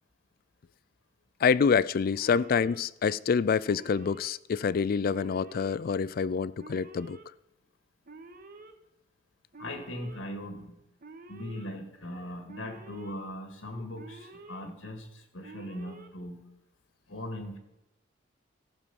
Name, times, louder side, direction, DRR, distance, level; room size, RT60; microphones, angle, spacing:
voice 1, 1.4-7.2, left 6 dB, 50° left, 0.3 m, -26 dB
Alarm, 2.2-2.8 3.6-4.3 5.1-5.8 6.6-7.2 8.1-8.7 9.5-10.2 11.0-11.7 12.5-13.1 14.0-14.6 15.4-16.1, right 3 dB, 45° right, 1.2 m, -48 dB
voice 2, 9.6-10.8 11.3-16.5 17.1-17.6, left 1 dB, 90° left, 2.0 m, -39 dB
15.0 x 6.5 x 7.0 m
head